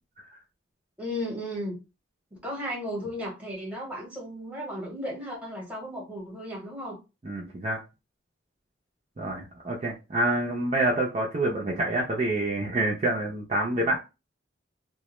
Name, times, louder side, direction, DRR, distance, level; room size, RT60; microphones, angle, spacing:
voice 1, 1.0-1.8 2.3-7.0, equal, 5° right, 0.8 m, -35 dB
voice 2, 7.2-7.8 9.2-14.0, right 1 dB, 35° right, 0.4 m, -27 dB
2.2 x 2.0 x 2.9 m
head